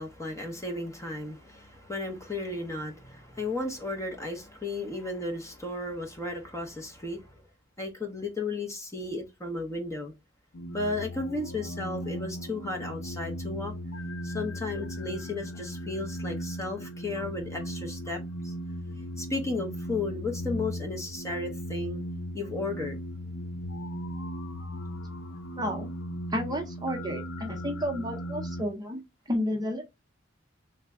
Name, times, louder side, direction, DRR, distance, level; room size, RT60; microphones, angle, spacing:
voice 1, 0.0-7.4 7.8-10.1 10.7-13.7 14.2-18.5 19.2-22.0 22.3-23.0, left 2 dB, 15° left, 0.7 m, -34 dB
sound 1, 10.5-28.6, equal, 65° left, 0.6 m, -37 dB
voice 2, 25.6-25.9 26.3-29.0 29.3-29.8, equal, 20° right, 0.7 m, -31 dB
3.3 x 2.1 x 3.6 m
head